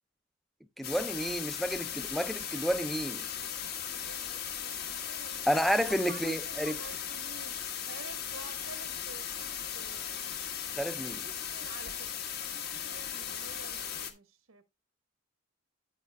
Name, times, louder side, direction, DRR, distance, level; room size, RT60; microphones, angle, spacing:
sound 1, 0.8-14.1, left 8 dB, 50° left, 1.3 m, -37 dB
voice 1, 0.8-3.3 5.5-6.8 10.8-11.2, equal, ahead, 0.4 m, -30 dB
voice 2, 3.4-5.5 5.9-7.6 7.9-10.4 11.2-14.6, right 4 dB, 85° right, 1.2 m, -51 dB
9.9 x 8.8 x 2.2 m
head